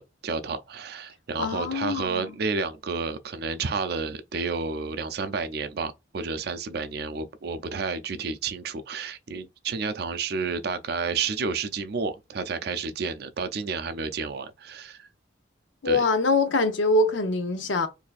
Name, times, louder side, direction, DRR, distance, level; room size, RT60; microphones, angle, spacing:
voice 1, 0.0-15.1 15.8-16.0, right 4 dB, 55° right, 0.4 m, -31 dB
voice 2, 1.4-2.3 15.8-17.9, left 2 dB, 85° left, 0.7 m, -24 dB
4.0 x 2.7 x 2.4 m
head